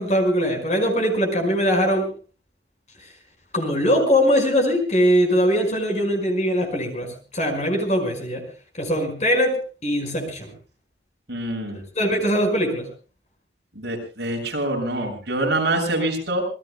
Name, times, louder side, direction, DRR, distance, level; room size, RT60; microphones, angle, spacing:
voice 1, 0.0-2.1 3.5-8.5 8.8-9.6 9.8-10.5 11.7-12.9, equal, 35° left, 4 dB, 5.4 m, -21 dB
voice 2, 11.3-11.8 13.8-16.4, right 1 dB, 60° right, 1 dB, 7.3 m, -25 dB
27.0 x 20.5 x 2.3 m, 0.36 s
head